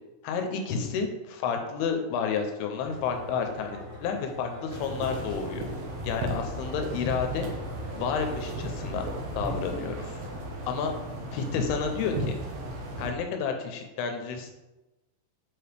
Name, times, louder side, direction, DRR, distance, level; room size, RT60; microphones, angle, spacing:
voice 1, 0.2-5.6 6.0-7.5 7.9-9.1 9.4-10.2 10.7-10.9 11.3-12.4 13.0-14.5, left 6 dB, 85° left, 4 dB, 2.7 m, -30 dB
sound 1, 2.8-10.7, left 1 dB, 55° left, 0.8 m, -45 dB
sound 2, 4.7-13.1, right 1 dB, 70° right, 2.7 m, -35 dB
7.8 x 4.8 x 3.3 m, 1.0 s
omnidirectional pair, 4.5 m